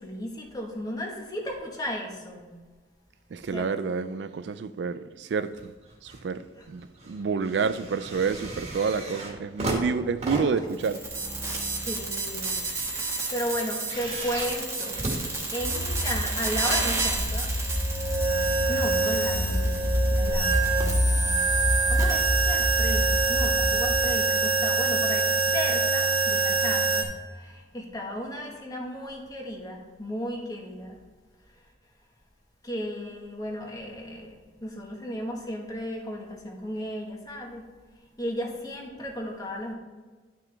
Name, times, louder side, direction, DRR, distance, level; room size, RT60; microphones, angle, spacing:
voice 1, 0.0-2.5 3.5-3.7 6.6-6.7 11.5-11.6 11.8-12.7 13.3-17.5 18.7-21.2 21.9-27.1 27.3-31.0 32.6-37.7 38.2-39.7, equal, 20° left, 1.5 m, -35 dB
voice 2, 3.3-5.7 6.0-11.0, right 5 dB, 75° right, 0.4 m, -29 dB
sound 1, 5.5-6.3 6.6-16.0 16.8-16.9, right 1 dB, 40° right, 1.9 m, -37 dB
sound 2, 10.7-27.0, right 3 dB, 15° right, 1.4 m, -26 dB
sound 3, 15.6-23.9, equal, 80° left, 1.2 m, -28 dB
11.5 x 6.0 x 3.4 m
head